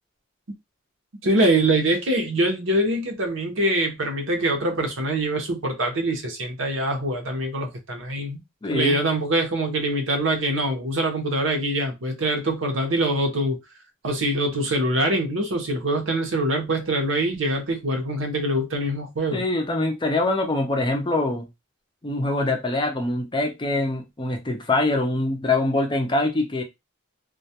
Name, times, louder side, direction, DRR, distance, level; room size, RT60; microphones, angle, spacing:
voice 1, 1.2-8.4 8.7-13.6 14.0-19.4, right 1 dB, 75° right, 0.8 m, -24 dB
voice 2, 8.6-9.0 19.3-21.5 22.0-26.6, left 2 dB, 25° left, 0.5 m, -24 dB
2.2 x 2.2 x 2.7 m
head